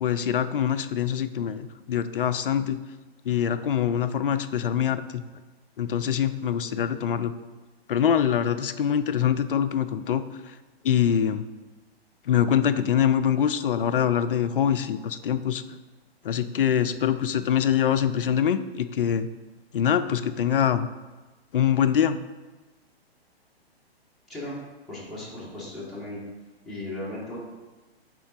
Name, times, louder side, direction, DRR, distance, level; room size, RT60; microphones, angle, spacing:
voice 1, 0.0-2.8 3.3-5.2 5.8-7.3 7.9-10.2 10.8-11.4 12.3-15.6 16.2-19.3 19.7-20.9 21.5-22.2, left 9 dB, 60° left, 11 dB, 0.4 m, -24 dB
voice 2, 24.9-26.2 26.6-27.4, left 1 dB, ahead, -9 dB, 1.5 m, -36 dB
9.4 x 3.7 x 2.8 m, 1.2 s
figure-of-eight pair, 125°, 32 cm